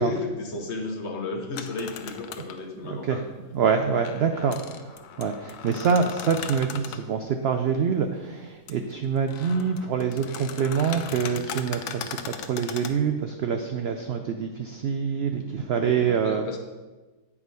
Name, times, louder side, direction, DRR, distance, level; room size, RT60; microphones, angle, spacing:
voice 1, 0.0-3.2 4.3-4.7 15.8-16.6, left 3 dB, 50° left, 3 dB, 1.0 m, -33 dB
sound 1, 1.5-2.6 4.1-7.1 8.7-8.8 9.2-13.0, left 8 dB, 80° left, 1.1 m, -38 dB
voice 2, 2.9-3.2 3.5-4.6 5.2-16.4, right 6 dB, 85° right, 6 dB, 0.5 m, -25 dB
8.5 x 4.8 x 5.2 m, 1.2 s
omnidirectional pair, 1.6 m